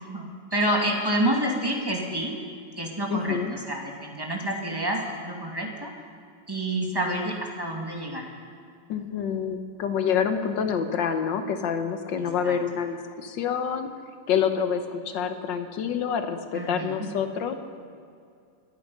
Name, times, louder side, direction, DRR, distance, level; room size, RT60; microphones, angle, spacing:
voice 1, 0.0-2.3 2.8-5.9 6.5-8.2 12.4-12.6 16.5-17.1, right 1 dB, 15° right, 0 dB, 2.0 m, -28 dB
voice 2, 3.1-3.5 8.9-13.9 14.3-17.6, left 7 dB, 80° left, 8 dB, 1.6 m, -27 dB
26.5 x 9.3 x 5.5 m, 2.3 s
omnidirectional pair, 2.0 m